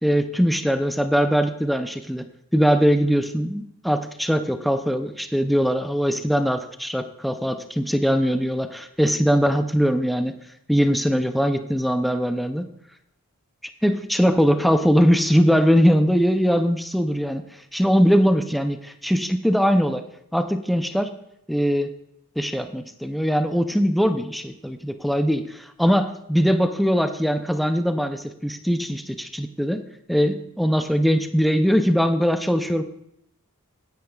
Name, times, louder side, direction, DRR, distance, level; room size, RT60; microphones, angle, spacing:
voice 1, 0.0-2.2 2.5-10.4 10.7-12.7 13.8-17.4 17.7-20.0 20.3-21.1 21.5-21.9 22.4-29.8 30.1-32.8, equal, ahead, 7 dB, 0.5 m, -21 dB
16.5 x 9.3 x 2.3 m, 0.78 s
head